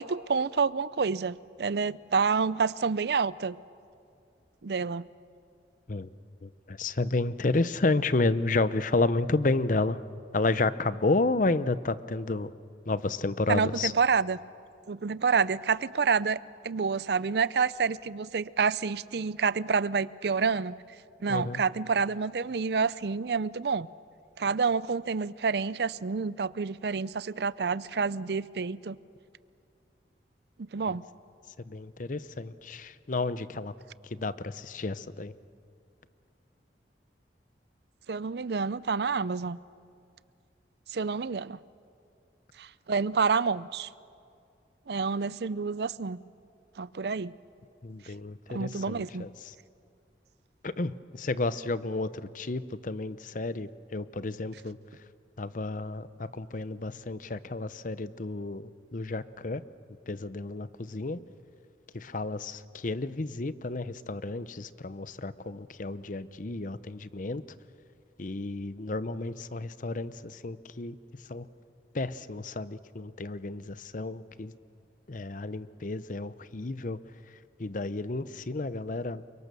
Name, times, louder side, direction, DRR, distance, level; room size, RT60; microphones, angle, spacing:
voice 1, 0.0-3.6 4.6-5.1 13.5-14.4 14.9-20.8 21.2-23.9 24.4-29.0 30.6-31.0 38.1-39.6 40.9-41.6 42.6-43.9 44.9-46.2 46.8-47.3 48.5-49.3, right 5 dB, 65° right, 19 dB, 0.5 m, -28 dB
voice 2, 6.4-10.0 10.3-12.5 12.9-13.9 21.3-21.6 31.7-33.7 34.1-35.3 47.8-49.5 50.6-54.8 55.4-59.6 60.1-61.2 61.9-67.4 68.2-70.9 71.3-71.5 71.9-74.5 75.1-77.0 77.6-79.3, left 3 dB, 45° left, 15 dB, 0.7 m, -31 dB
29.5 x 24.0 x 6.9 m, 2.4 s
head